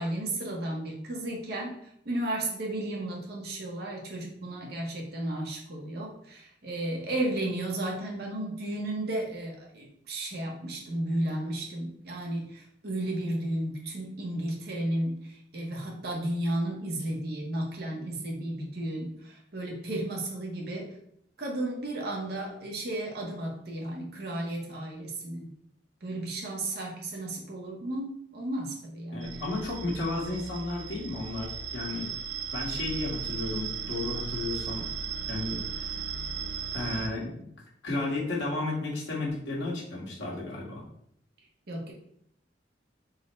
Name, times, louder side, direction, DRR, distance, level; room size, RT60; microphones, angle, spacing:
voice 1, 0.0-1.8 2.0-20.9 21.4-25.5 26.0-29.4 41.7-41.9, right 1 dB, 60° right, -1 dB, 0.9 m, -33 dB
voice 2, 29.1-32.1 32.5-34.9 35.3-36.0 36.7-37.5 37.8-40.8, left 2 dB, 80° left, -4 dB, 1.3 m, -33 dB
sound 1, 29.2-37.1, right 6 dB, 85° right, 0.5 m, -36 dB
3.5 x 2.1 x 4.3 m, 0.70 s
head